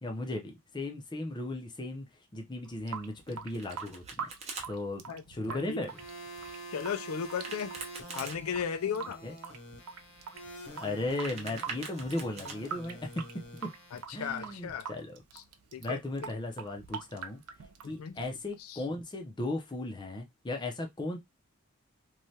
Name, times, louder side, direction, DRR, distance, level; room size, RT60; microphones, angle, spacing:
voice 1, 0.0-2.1 2.3-4.3 4.7-5.9 9.2-9.3 10.8-13.1 13.6-13.7 14.1-15.2 15.8-17.4 17.8-21.2, left 2 dB, 20° left, 0.5 m, -36 dB
Water tap faucet / Sink (filling or washing) / Drip, 2.6-18.6, right 7 dB, 85° right, 0.4 m, -45 dB
Domestic sounds home sounds, 3.3-4.7 7.2-8.4 10.9-12.6, right 4 dB, 30° right, 0.7 m, -43 dB
voice 2, 5.5-5.8 6.7-7.7 8.1-9.2 13.9-14.9 15.3-15.4 15.7-16.0 17.8-18.1 18.6-18.8, left 7 dB, 75° left, 0.4 m, -35 dB
sound 1, 5.9-14.0, right 1 dB, 55° left, 0.8 m, -47 dB
3.1 x 2.2 x 2.7 m
head